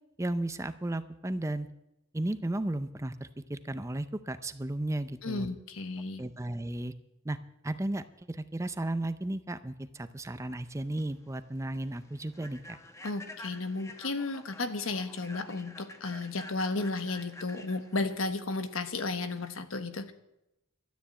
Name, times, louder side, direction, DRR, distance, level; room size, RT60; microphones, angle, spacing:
voice 1, 0.2-1.7 2.1-5.5 6.2-6.9 7.2-7.4 7.6-12.8, right 1 dB, 15° right, 12 dB, 0.5 m, -34 dB
voice 2, 5.2-6.2 13.0-20.1, left 3 dB, 80° left, 9 dB, 1.2 m, -33 dB
Human voice / Train, 10.7-19.5, left 2 dB, 15° left, 1.0 m, -49 dB
13.0 x 9.2 x 8.4 m, 0.89 s
head